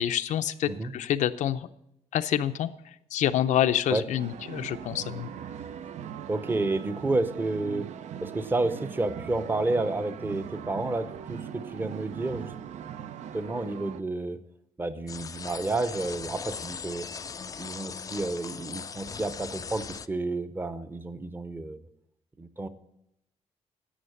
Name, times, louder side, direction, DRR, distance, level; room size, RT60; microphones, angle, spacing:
voice 1, 0.0-1.7 2.1-2.7 3.1-5.3, left 11 dB, 80° left, 12 dB, 0.6 m, -27 dB
sound 1, 4.2-14.0, right 9 dB, 70° right, 0.6 m, -40 dB
voice 2, 6.3-7.9 8.2-12.5 13.3-14.4 14.8-17.1 17.6-21.8 22.4-22.7, right 2 dB, 15° right, 12 dB, 0.7 m, -30 dB
sound 2, 15.1-20.1, left 6 dB, 30° left, 0.4 m, -39 dB
11.5 x 7.8 x 6.5 m, 0.81 s
cardioid pair, 145°, 12 cm